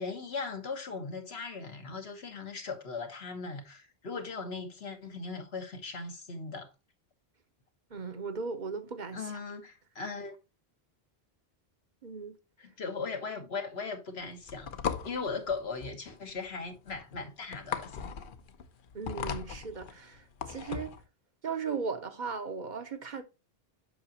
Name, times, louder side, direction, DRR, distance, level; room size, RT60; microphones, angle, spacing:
voice 1, 0.0-6.7 9.1-10.4 12.6-14.7 15.0-18.1, left 4 dB, 75° left, 1.6 m, -38 dB
voice 2, 7.9-9.3 12.0-12.4 18.9-20.9 21.4-23.2, right 5 dB, 50° right, 0.9 m, -37 dB
sound 1, 14.2-21.0, left 7 dB, 60° left, 0.8 m, -38 dB
8.1 x 5.8 x 2.8 m
omnidirectional pair, 1.0 m